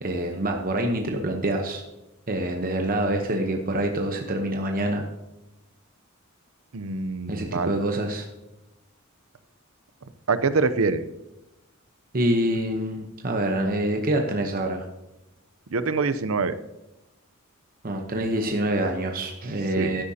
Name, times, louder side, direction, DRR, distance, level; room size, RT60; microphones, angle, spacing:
voice 1, 0.0-1.8 2.3-5.0 7.3-8.3 12.1-14.9 17.8-20.0, right 1 dB, 40° right, 3 dB, 0.9 m, -26 dB
voice 2, 6.7-7.7 10.3-11.0 15.7-16.5 19.8-20.0, right 4 dB, 70° right, 13 dB, 0.6 m, -25 dB
12.5 x 10.0 x 2.8 m, 0.95 s
head